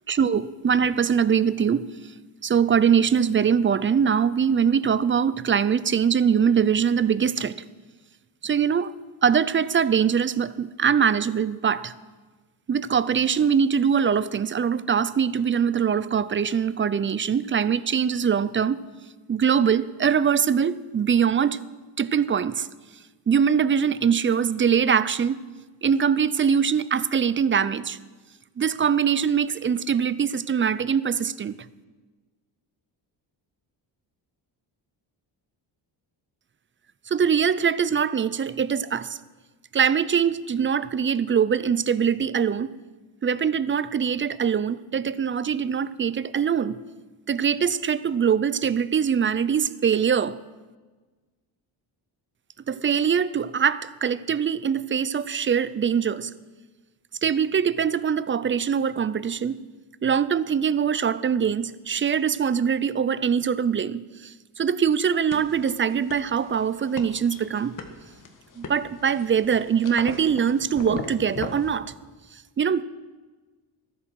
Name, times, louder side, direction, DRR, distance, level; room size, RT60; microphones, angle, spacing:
voice 1, 0.1-1.9 2.4-7.6 8.4-8.9 9.2-11.9 12.7-18.8 19.3-21.6 22.0-22.7 23.3-25.4 25.8-28.0 28.6-31.6 37.1-39.2 39.7-42.7 43.2-46.8 47.3-50.4 52.7-56.3 57.2-59.6 60.0-67.7 68.6-71.9 72.3-72.8, right 7 dB, 25° right, 0.4 m, -23 dB
sound 1, 65.3-71.8, left 4 dB, 45° left, 1.6 m, -38 dB
13.5 x 11.0 x 6.2 m
cardioid pair, 95°, 45 cm